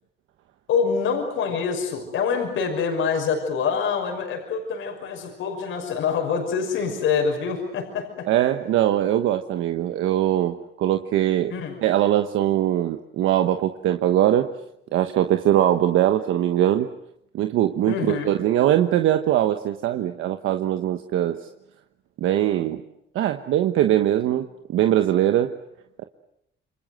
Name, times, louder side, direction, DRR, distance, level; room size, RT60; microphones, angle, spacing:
voice 1, 0.7-8.3 11.5-11.8 17.9-18.3, left 6 dB, 85° left, 3 dB, 5.8 m, -25 dB
voice 2, 8.3-11.5 11.8-14.5 14.9-16.9 17.3-21.4 22.2-22.8 23.1-25.5, right 12 dB, 85° right, 7 dB, 1.3 m, -21 dB
28.5 x 25.5 x 8.0 m, 0.78 s
cardioid pair, 90°, 20 cm